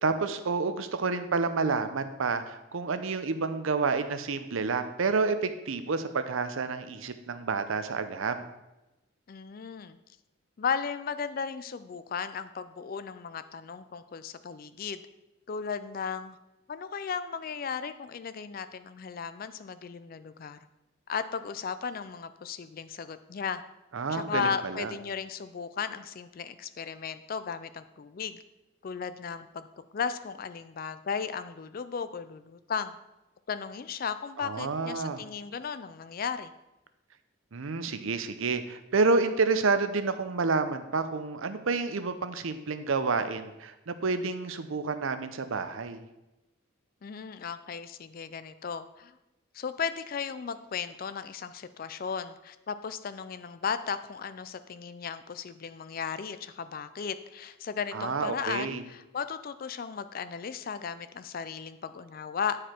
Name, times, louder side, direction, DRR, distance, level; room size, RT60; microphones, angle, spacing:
voice 1, 0.0-8.5 23.9-24.9 34.4-35.2 37.5-46.0 57.9-58.8, right 4 dB, 75° right, 10 dB, 0.6 m, -29 dB
voice 2, 9.3-10.0 10.6-15.0 15.5-16.4 16.7-20.6 21.1-23.6 24.1-28.4 28.8-29.7 29.9-32.9 33.5-36.5 47.0-49.2 49.5-62.6, left 6 dB, 45° left, 12 dB, 0.4 m, -35 dB
9.9 x 4.9 x 4.4 m, 0.97 s
head